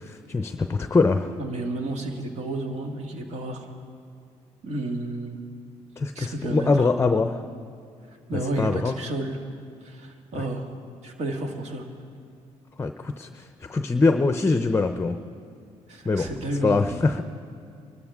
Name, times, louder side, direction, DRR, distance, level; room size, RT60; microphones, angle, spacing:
voice 1, 0.0-1.3 6.0-7.4 8.6-9.0 12.8-15.2 16.0-16.3 16.6-17.2, left 3 dB, 20° left, 8 dB, 0.6 m, -23 dB
voice 2, 1.4-3.7 4.6-5.4 6.2-6.7 8.3-9.4 9.8-10.7 11.0-11.9 15.9-17.0, right 2 dB, 60° right, 3 dB, 1.9 m, -31 dB
24.0 x 13.0 x 3.6 m, 2.3 s
cardioid pair, 85°, 12 cm